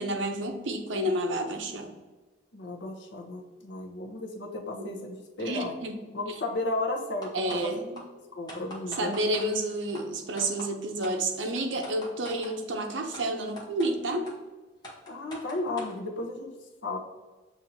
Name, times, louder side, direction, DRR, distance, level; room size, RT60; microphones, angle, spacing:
voice 1, 0.0-1.9 4.7-4.9 5.4-6.0 7.3-8.0 9.0-14.3, right 1 dB, 85° right, 4 dB, 0.7 m, -30 dB
voice 2, 2.5-5.8 6.1-7.7 8.4-9.1 15.1-16.5 16.8-17.0, left 2 dB, 75° left, 1 dB, 0.7 m, -34 dB
sound 1, 7.2-7.7 7.9-8.0 8.5-9.5 9.9-10.0 10.4-10.7 11.0-11.2 11.6-12.5 13.1-13.2 13.6-13.9 14.3-14.4 14.8-15.9, equal, 20° left, 0.9 m, -42 dB
7.0 x 2.7 x 2.7 m, 1.2 s
head